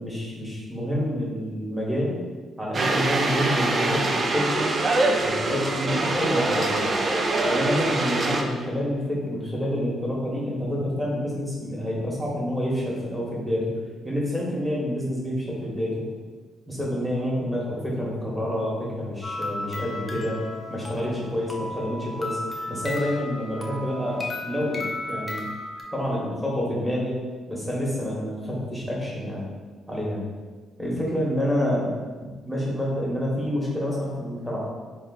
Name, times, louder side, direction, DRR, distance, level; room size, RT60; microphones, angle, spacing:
voice 1, 0.0-2.2 2.6-4.7 5.2-6.8 7.4-13.7 14.0-16.0 16.7-20.4 20.7-22.4 22.7-25.5 25.9-27.2 27.5-29.4 29.9-30.2 30.8-31.9 32.2-34.7, equal, 5° right, -6 dB, 1.3 m, -28 dB
sound 1, 2.7-8.4, right 2 dB, 40° right, 0.5 m, -24 dB
sound 2, 19.2-25.8, left 2 dB, 25° left, 0.6 m, -34 dB
3.6 x 2.5 x 3.8 m, 1.4 s
cardioid pair, 90°, 0 cm